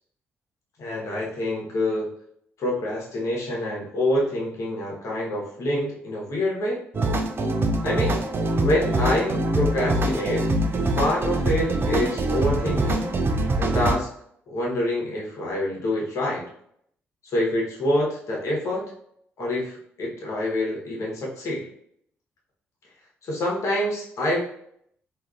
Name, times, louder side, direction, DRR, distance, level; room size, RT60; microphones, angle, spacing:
voice 1, 0.8-2.1 2.6-6.8 7.8-8.2 8.6-10.5 11.0-13.1 13.6-14.1 14.5-16.4 17.3-18.8 19.4-21.7 23.3-24.4, left 1 dB, 55° left, -3 dB, 1.1 m, -26 dB
sound 1, 6.9-14.0, right 1 dB, 35° right, 0.4 m, -24 dB
3.5 x 2.6 x 2.4 m, 0.69 s
figure-of-eight pair, 40°, 6 cm